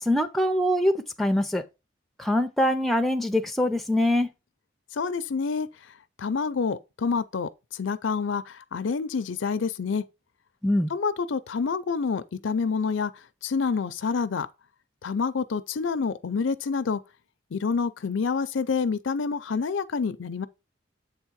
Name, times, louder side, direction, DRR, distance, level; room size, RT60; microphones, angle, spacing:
voice 1, 0.0-1.6 2.2-4.3 10.6-10.9, left 1 dB, ahead, 0.5 m, -23 dB
voice 2, 4.9-5.7 6.2-10.0 10.9-13.1 13.4-14.5 15.0-17.0 17.5-20.5, left 5 dB, 75° left, 0.5 m, -27 dB
7.9 x 3.6 x 4.6 m
head